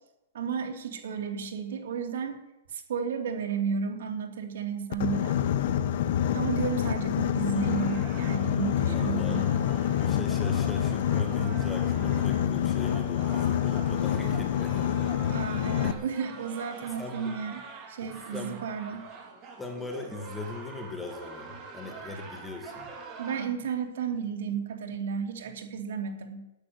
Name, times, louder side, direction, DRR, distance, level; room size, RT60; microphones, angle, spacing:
voice 1, 0.3-2.4 2.7-5.4 6.3-9.5 15.3-17.6 17.9-19.1 23.2-26.4, right 6 dB, 65° right, 4 dB, 2.8 m, -33 dB
Boat Water vehicle, 4.9-15.9, left 10 dB, 45° left, 0.9 m, -27 dB
sound 1, 7.5-23.5, right 4 dB, 20° right, 2.6 m, -44 dB
voice 2, 8.9-9.5 10.0-15.0 15.8-15.9 17.0-17.4 18.0-18.6 19.6-22.9, left 2 dB, 5° left, 3 dB, 1.6 m, -39 dB
10.5 x 9.7 x 9.3 m, 0.94 s
hypercardioid pair, 170°, 0 cm